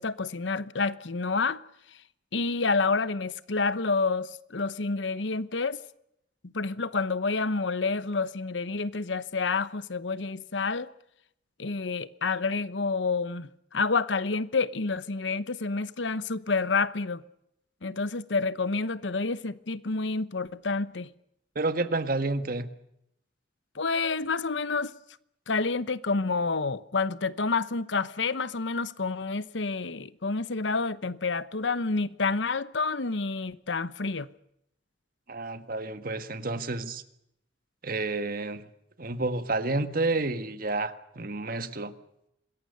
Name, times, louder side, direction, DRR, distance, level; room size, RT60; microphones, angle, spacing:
voice 1, 0.0-1.6 2.3-5.8 6.4-10.9 11.6-17.2 17.8-21.1 23.7-24.9 25.5-34.3, left 4 dB, 80° left, 1.0 m, -29 dB
voice 2, 21.5-22.7 35.3-37.0 37.8-38.7 39.0-41.9, right 2 dB, 50° right, 1.6 m, -30 dB
26.0 x 21.5 x 6.7 m
head